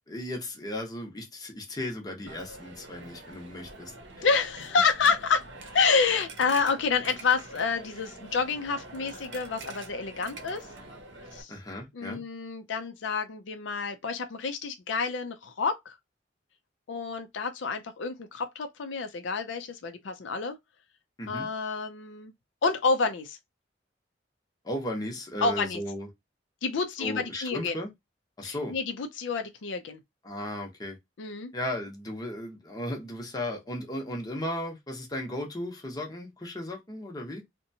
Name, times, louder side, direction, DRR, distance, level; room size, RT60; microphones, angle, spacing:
voice 1, 0.1-4.2 11.5-12.2 21.2-21.5 24.6-26.1 27.0-27.9 28.4-28.8 30.2-31.0 31.5-37.4, left 1 dB, 20° left, 0.8 m, -35 dB
Coin (dropping), 2.3-11.4, right 2 dB, 75° right, 0.7 m, -45 dB
voice 2, 4.2-10.7 11.3-11.6 11.9-15.9 16.9-20.6 21.3-22.3 22.6-23.4 25.4-25.8 26.6-27.8 28.4-30.0 31.2-31.5, left 5 dB, 85° left, 0.5 m, -28 dB
2.7 x 2.2 x 2.7 m
head